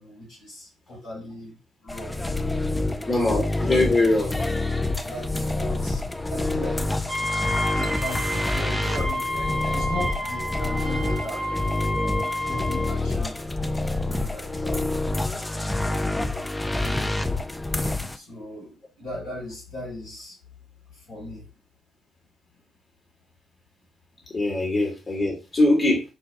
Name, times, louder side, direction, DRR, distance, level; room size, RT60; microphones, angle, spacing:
voice 1, 0.0-1.6 1.8-2.2 2.9-3.2 4.1-4.4 4.9-6.0 6.3-6.9 7.4-13.5 14.1-14.9 15.8-16.3 16.8-17.1 18.1-20.4 20.9-21.5, left 1 dB, 70° left, 2.1 m, -38 dB
sound 1, 1.9-18.2, left 2 dB, 15° left, 0.4 m, -27 dB
voice 2, 3.1-4.3 24.3-26.0, left 2 dB, 35° left, 1.1 m, -22 dB
Wind instrument woodwind instrument, 7.1-13.0, equal, 15° right, 0.8 m, -30 dB
4.9 x 2.2 x 2.5 m
figure-of-eight pair, 40°, 0 cm